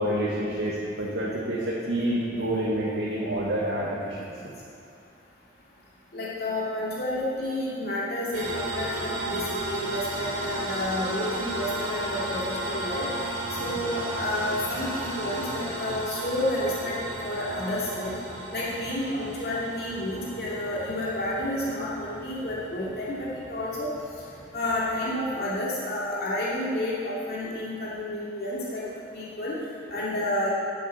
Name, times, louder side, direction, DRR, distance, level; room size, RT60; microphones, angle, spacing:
voice 1, 0.0-4.3 13.6-13.7, right 1 dB, 85° right, -6 dB, 1.8 m, -28 dB
voice 2, 6.1-13.1 13.6-16.9 17.2-18.1 18.5-23.9 24.5-28.8 29.1-29.6 29.9-30.5, left 1 dB, 55° left, -7 dB, 2.7 m, -30 dB
sound 1, 8.3-25.4, right 1 dB, 45° right, 2.6 m, -35 dB
11.0 x 8.1 x 7.5 m, 2.5 s
head